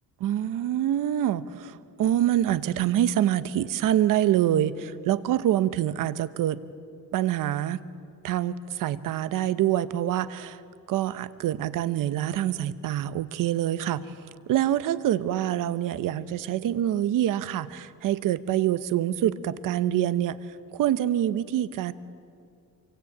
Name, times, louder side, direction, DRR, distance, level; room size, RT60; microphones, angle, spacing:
voice 1, 0.2-6.6 7.1-7.8 8.2-10.6 10.9-14.1 14.5-20.4 20.7-21.9, right 12 dB, 70° right, 14 dB, 1.0 m, -25 dB
27.5 x 24.0 x 8.7 m, 2.3 s
cardioid pair, 160°, 33 cm